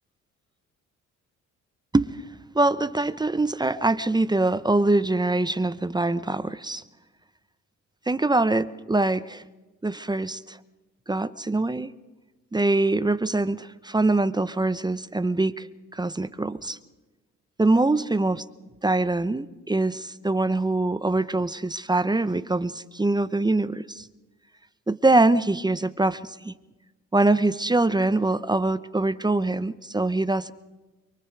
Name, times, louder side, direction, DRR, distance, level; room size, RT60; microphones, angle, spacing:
voice 1, 2.5-6.8 8.1-9.4 9.8-10.6 11.1-11.9 12.5-15.7 15.9-16.8 17.6-18.4 18.8-24.1 24.9-26.5 27.1-30.5, right 2 dB, 15° right, 13 dB, 0.8 m, -23 dB
29.0 x 24.0 x 4.7 m, 1.1 s
cardioid pair, 90°, 30 cm